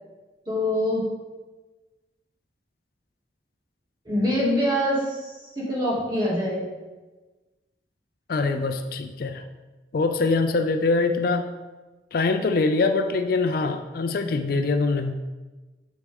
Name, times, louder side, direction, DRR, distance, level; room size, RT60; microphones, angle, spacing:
voice 1, 0.5-1.1 4.0-6.6, equal, 25° right, -6 dB, 2.2 m, -24 dB
voice 2, 8.3-9.4 9.9-11.5 12.1-15.2, left 3 dB, 55° left, 7 dB, 0.4 m, -23 dB
7.3 x 6.3 x 3.5 m, 1.2 s
head